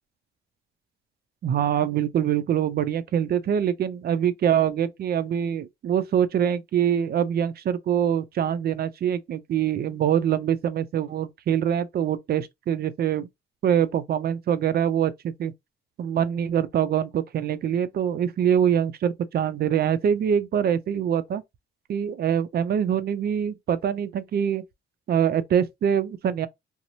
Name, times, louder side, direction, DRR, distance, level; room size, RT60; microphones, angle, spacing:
voice 1, 1.4-13.3 13.6-15.5 16.0-21.4 21.9-24.6 25.1-26.5, right 9 dB, 50° right, 0.4 m, -24 dB
2.6 x 2.0 x 2.9 m
cardioid pair, 90°, 20 cm